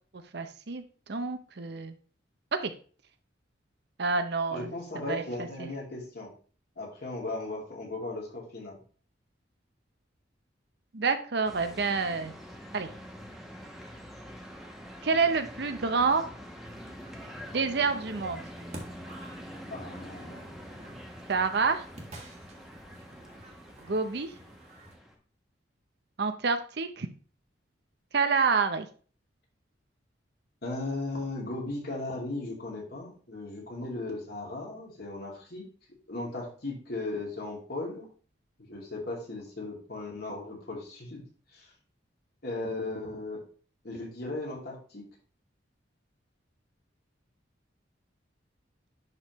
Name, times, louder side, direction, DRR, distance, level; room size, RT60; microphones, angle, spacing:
voice 1, 0.3-2.0 2.5-2.7 4.0-5.7 10.9-12.3 12.7-12.9 15.0-16.2 17.5-18.4 21.3-21.8 23.8-24.3 26.2-27.1 28.1-28.9, right 4 dB, 60° right, 9 dB, 0.7 m, -28 dB
voice 2, 4.5-6.3 6.8-8.8 19.7-20.7 30.6-35.7 36.1-38.1 38.6-41.2 41.5-41.7 42.4-43.4 43.8-45.1, left 2 dB, 55° left, -3 dB, 2.4 m, -37 dB
sound 1, 11.4-25.1, equal, ahead, 1.0 m, -45 dB
sound 2, 16.6-25.0, right 1 dB, 35° right, 1.4 m, -50 dB
11.0 x 3.7 x 3.0 m, 0.40 s
head